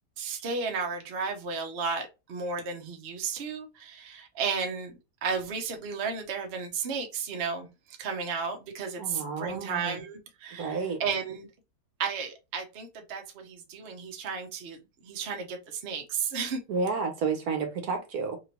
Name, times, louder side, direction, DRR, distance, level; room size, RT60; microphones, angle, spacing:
voice 1, 0.2-5.0 5.2-7.7 8.0-11.5 12.0-16.6, right 5 dB, 50° right, 0.9 m, -33 dB
voice 2, 9.0-10.0 10.6-11.0 16.7-18.4, right 4 dB, 65° right, 1.3 m, -31 dB
3.1 x 2.9 x 2.8 m
omnidirectional pair, 1.8 m